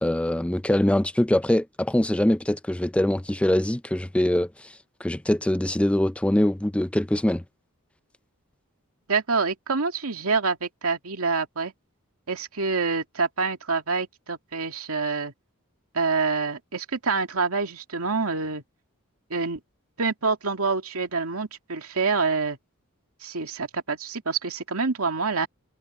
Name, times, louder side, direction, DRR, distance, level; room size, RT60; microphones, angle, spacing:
voice 1, 0.0-4.7 5.0-7.4, left 1 dB, 5° left, 0.4 m, -23 dB
voice 2, 9.1-11.7 12.3-15.3 15.9-18.6 19.3-19.6 20.0-22.6 23.2-25.5, right 4 dB, 85° right, 2.3 m, -26 dB
head